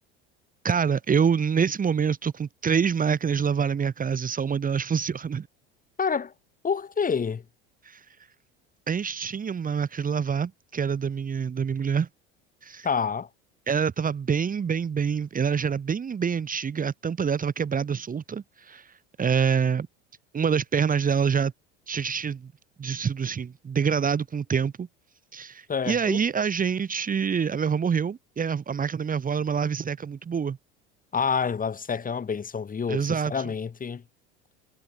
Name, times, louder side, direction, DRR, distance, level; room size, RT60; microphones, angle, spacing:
voice 1, 0.6-5.5 7.8-8.0 8.9-12.1 12.6-12.9 13.7-18.9 19.2-19.9 20.3-21.5 21.9-22.4 22.8-24.9 25.3-30.6 32.9-33.4, right 6 dB, 30° right, 2.5 m, -26 dB
voice 2, 6.0-6.3 6.6-7.4 12.8-13.3 25.7-26.2 31.1-34.0, left 6 dB, 25° left, 7.5 m, -28 dB
supercardioid pair, 90°, 30 cm